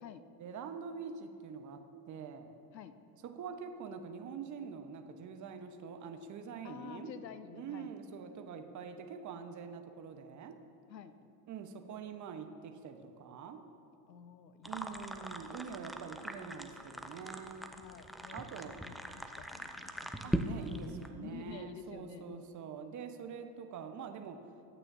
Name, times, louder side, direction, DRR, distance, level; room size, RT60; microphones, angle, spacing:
voice 1, 0.4-2.5 3.2-7.2 7.5-10.6 11.5-13.7 14.6-17.6 18.3-18.8 20.2-24.4, right 6 dB, 35° right, 7 dB, 1.2 m, -45 dB
voice 2, 6.6-7.9 10.9-11.2 14.1-15.0 16.3-16.5 17.8-20.5 20.9-22.4, left 8 dB, 90° left, 12 dB, 0.8 m, -50 dB
sound 1, 14.6-21.1, equal, ahead, 0.4 m, -41 dB
22.5 x 9.0 x 2.8 m, 2.6 s
hypercardioid pair, 80°, 49 cm